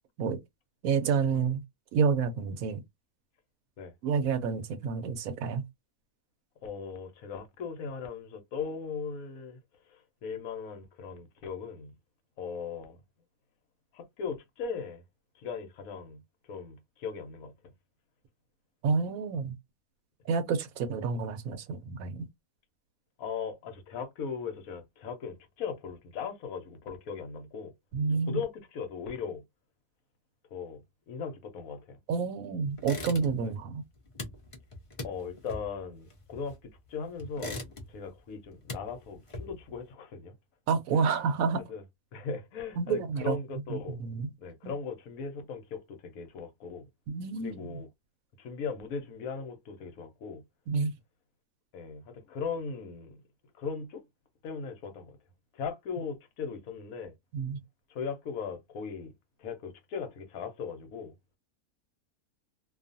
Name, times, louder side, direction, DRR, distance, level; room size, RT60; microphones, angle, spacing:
voice 1, 0.8-1.6 1.9-2.8 4.0-5.6 18.8-19.6 20.3-22.3 27.9-28.4 32.1-33.8 40.7-41.6 42.8-43.4 43.7-44.3 44.6-44.7 47.1-47.8 50.7-50.9 57.3-57.6, right 5 dB, 75° right, 1.0 m, -29 dB
voice 2, 6.6-9.6 9.9-11.9 12.4-13.0 13.9-15.0 15.4-16.2 16.5-17.5 23.2-27.7 28.3-29.4 30.5-32.0 33.4-33.5 35.0-36.6 36.9-37.6 37.9-40.3 40.9-41.2 41.7-41.8 42.1-44.0 44.4-46.9 47.4-47.9 48.4-50.4 51.7-53.2 53.5-54.0 54.4-55.2 55.5-57.1 57.9-59.1 59.4-61.1, left 5 dB, 75° left, 1.1 m, -38 dB
sound 1, 32.8-33.6 33.8-36.8 37.2-38.1 38.4-39.8, left 1 dB, 50° left, 0.3 m, -41 dB
2.5 x 2.4 x 2.6 m
omnidirectional pair, 1.5 m